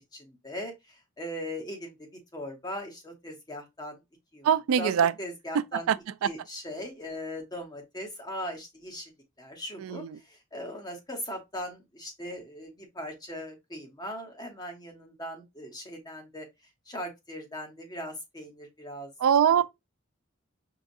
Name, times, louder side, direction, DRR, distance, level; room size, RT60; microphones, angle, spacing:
voice 1, 0.0-4.0 4.3-4.5 4.8-5.9 6.2-9.1 9.4-16.5 16.9-19.1, equal, 20° left, 1.1 m, -39 dB
voice 2, 4.4-5.1 5.5-6.3 9.8-10.2 19.2-19.6, right 8 dB, 85° right, 0.3 m, -24 dB
5.7 x 2.4 x 2.6 m
head